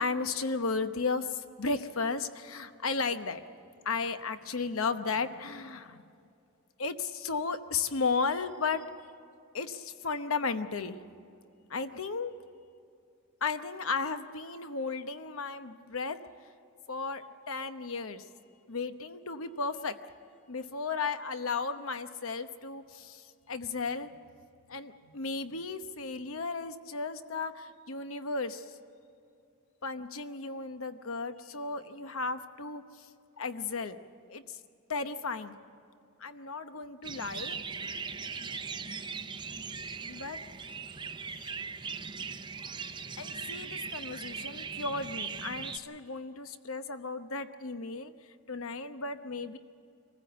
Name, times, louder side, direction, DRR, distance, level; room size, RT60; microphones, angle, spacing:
voice 1, 0.0-3.4 3.8-6.0 6.8-8.8 9.5-11.0 11.7-12.3 13.4-16.2 16.9-18.3 18.7-20.0 20.5-24.1 24.7-28.8 29.8-33.1 33.4-34.0 34.3-34.6 34.9-35.5 36.2-37.6 40.1-40.4 41.3-41.6 43.2-49.6, left 4 dB, 75° left, 10 dB, 1.0 m, -34 dB
sound 1, 37.0-45.8, right 5 dB, 20° right, 0.6 m, -39 dB
25.0 x 15.0 x 8.0 m, 2.5 s
head